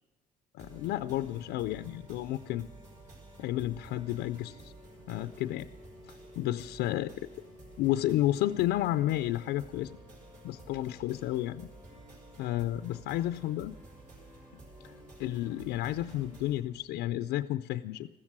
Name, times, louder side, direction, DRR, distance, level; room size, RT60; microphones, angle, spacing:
voice 1, 0.5-2.7 3.4-4.7 5.1-5.7 6.4-7.3 7.8-10.0 10.4-11.7 12.4-13.8 14.8-14.9 15.2-18.1, left 14 dB, 85° left, 11 dB, 0.4 m, -31 dB
sound 1, 0.6-16.6, right 1 dB, 50° right, 5.4 m, -51 dB
14.5 x 14.0 x 6.0 m, 1.3 s
cardioid pair, 110°, 17 cm